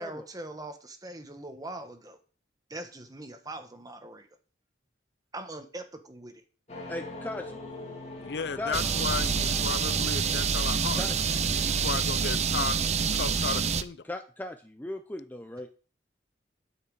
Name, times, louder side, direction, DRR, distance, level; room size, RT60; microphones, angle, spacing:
voice 1, 0.0-2.2 2.7-4.3 5.3-6.4, right 1 dB, 20° right, 1.2 m, -41 dB
sound 1, 6.7-10.8, left 2 dB, 40° left, 3.2 m, -43 dB
voice 2, 6.9-7.5 8.6-8.8 11.0-11.1 14.1-15.7, left 1 dB, 10° left, 0.6 m, -37 dB
voice 3, 8.2-11.1 11.5-12.8 13.1-14.0, left 5 dB, 65° left, 0.5 m, -34 dB
sound 2, 8.7-13.8, right 6 dB, 40° right, 0.6 m, -27 dB
12.5 x 5.8 x 4.8 m
head